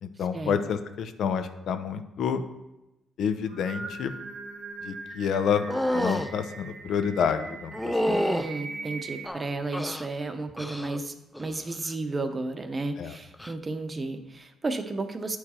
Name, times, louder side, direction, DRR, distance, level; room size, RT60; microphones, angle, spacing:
voice 1, 0.0-2.4 3.2-4.1 4.8-5.7 5.9-8.1 13.0-13.1, left 7 dB, 70° left, 9 dB, 0.6 m, -28 dB
Singing, 3.3-9.3, right 3 dB, 65° right, 1.5 m, -41 dB
sound 1, 5.7-6.3 7.7-8.5 9.2-10.1 10.6-11.0 11.3-11.8 13.3-13.5, equal, 5° left, 0.4 m, -29 dB
voice 2, 8.1-15.4, right 3 dB, 30° right, 8 dB, 0.8 m, -33 dB
8.8 x 4.7 x 4.3 m, 0.94 s
cardioid pair, 90°, 0 cm